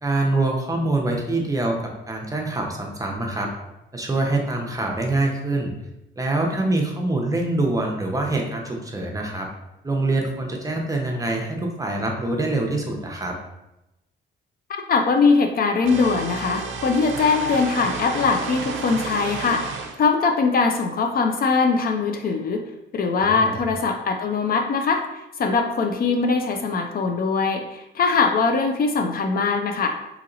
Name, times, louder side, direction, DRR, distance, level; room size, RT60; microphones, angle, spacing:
voice 1, 0.0-3.5 3.9-5.7 6.2-9.5 9.8-13.3 23.2-23.6, right 2 dB, 15° right, 0 dB, 0.7 m, -25 dB
voice 2, 14.9-19.6 20.0-22.7 22.9-25.0 25.4-29.9, left 4 dB, 50° left, 4 dB, 0.4 m, -21 dB
sound 1, 15.8-20.0, right 5 dB, 80° right, 0.5 m, -31 dB
2.8 x 2.7 x 3.9 m, 0.91 s
cardioid pair, 90°, 20 cm